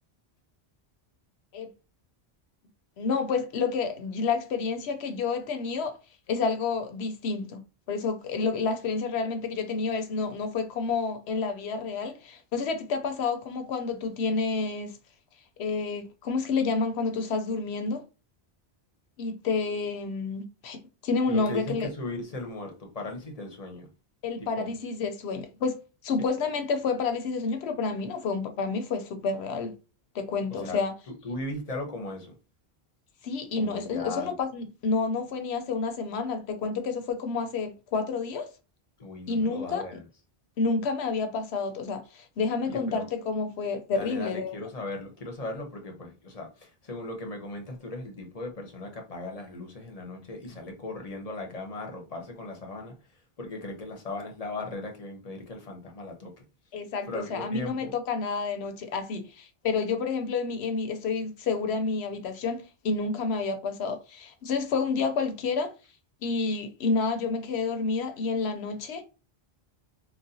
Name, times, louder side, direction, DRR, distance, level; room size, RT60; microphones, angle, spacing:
voice 1, 3.0-6.0 6.3-7.6 7.9-15.0 15.6-18.0 19.2-21.9 24.2-29.7 30.1-30.9 33.2-38.5 39.3-39.9 40.6-44.5 56.7-65.7 66.2-69.0, left 4 dB, 80° left, 0.9 m, -29 dB
voice 2, 21.3-23.9 24.4-24.7 30.5-32.3 33.5-34.3 39.0-40.0 42.6-43.1 43.9-52.9 53.4-56.4 57.1-57.9, left 2 dB, 40° left, 0.8 m, -38 dB
3.9 x 2.2 x 2.7 m
omnidirectional pair, 1.1 m